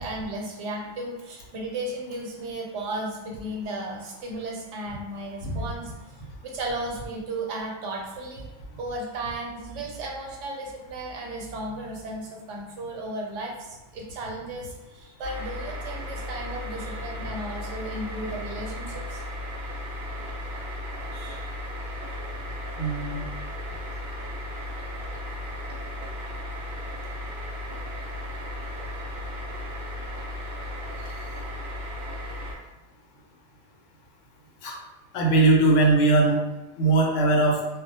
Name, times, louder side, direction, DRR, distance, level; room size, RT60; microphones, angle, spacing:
voice 1, 0.0-5.9 6.4-8.5 8.8-19.2 21.1-21.5, right 1 dB, 85° right, 0 dB, 0.9 m, -35 dB
sound 1, 15.2-32.5, left 1 dB, 60° right, 0.7 m, -35 dB
voice 2, 22.8-23.3 34.6-34.8 35.1-36.4 36.8-37.6, right 2 dB, 85° left, 0 dB, 0.9 m, -20 dB
2.2 x 2.0 x 2.7 m, 1.0 s
omnidirectional pair, 1.2 m